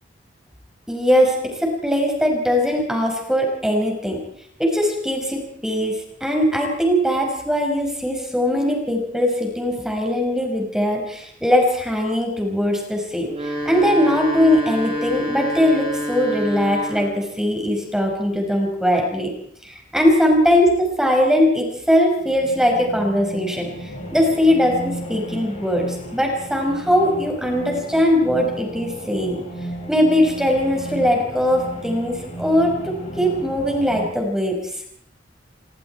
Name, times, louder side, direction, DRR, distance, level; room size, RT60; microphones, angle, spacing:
voice 1, 0.9-4.2 4.6-13.3 13.7-19.3 19.7-23.7 24.1-25.9 26.1-29.4 29.9-34.6, equal, 5° right, 1 dB, 5.7 m, -20 dB
sound 1, 13.2-17.3, equal, 35° right, 7.5 m, -27 dB
sound 2, 22.1-34.1, right 1 dB, 40° left, 7.0 m, -34 dB
26.5 x 23.5 x 4.7 m, 0.66 s
head